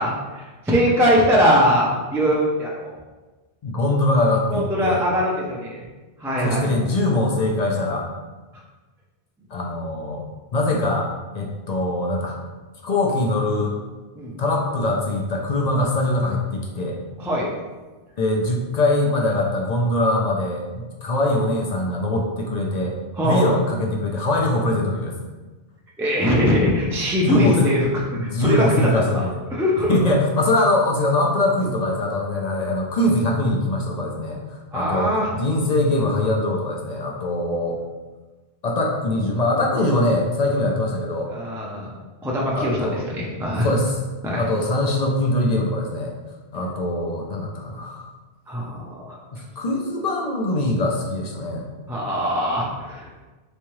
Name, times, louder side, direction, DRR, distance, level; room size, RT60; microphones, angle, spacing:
voice 1, 0.0-2.9 4.5-5.8 6.2-6.7 14.1-14.4 17.2-17.5 23.2-23.5 26.0-27.9 28.2-29.0 29.5-30.0 34.7-35.3 41.3-41.9 42.2-43.7 44.2-44.4 48.5-49.2 51.9-53.1, equal, 5° right, -5 dB, 0.3 m, -21 dB
voice 2, 3.6-5.0 6.4-8.1 9.5-10.2 10.5-12.4 12.8-13.8 14.4-17.0 18.2-23.0 23.2-25.2 27.2-27.8 28.1-29.4 29.9-37.8 38.6-41.3 42.5-43.0 43.6-44.0 44.4-46.1 46.5-48.1 49.6-51.7, left 1 dB, 55° left, 0 dB, 0.5 m, -22 dB
3.5 x 3.2 x 3.0 m, 1.2 s
omnidirectional pair, 1.2 m